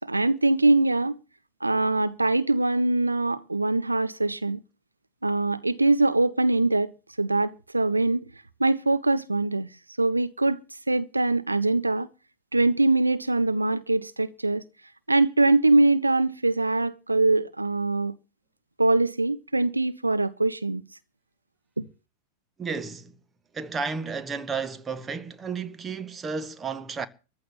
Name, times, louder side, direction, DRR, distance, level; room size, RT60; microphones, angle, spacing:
voice 1, 0.0-1.2 1.6-4.6 5.2-6.9 7.2-8.3 8.6-9.7 10.0-10.6 10.9-12.1 12.5-14.6 15.1-18.1 18.8-20.8 21.8-21.9, right 2 dB, 85° right, 0.7 m, -23 dB
voice 2, 22.6-23.1 23.5-27.1, right 5 dB, 20° right, 1.3 m, -32 dB
14.5 x 9.7 x 7.0 m
figure-of-eight pair, 90°, 0 cm